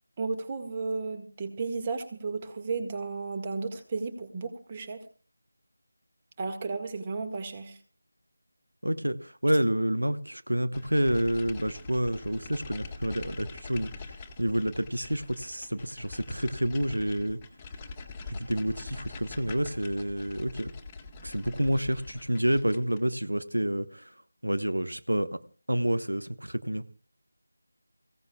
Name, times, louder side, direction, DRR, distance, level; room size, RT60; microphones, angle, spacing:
voice 1, 0.2-5.0 6.4-7.8, right 4 dB, 25° right, 1.8 m, -33 dB
voice 2, 8.8-14.1 14.4-17.4 18.3-20.7 21.2-24.1 24.4-25.4 25.7-26.8, right 1 dB, 90° right, 1.0 m, -29 dB
sound 1, 10.7-23.1, left 3 dB, 15° left, 1.7 m, -44 dB
28.5 x 16.5 x 2.3 m
figure-of-eight pair, 165°, 0 cm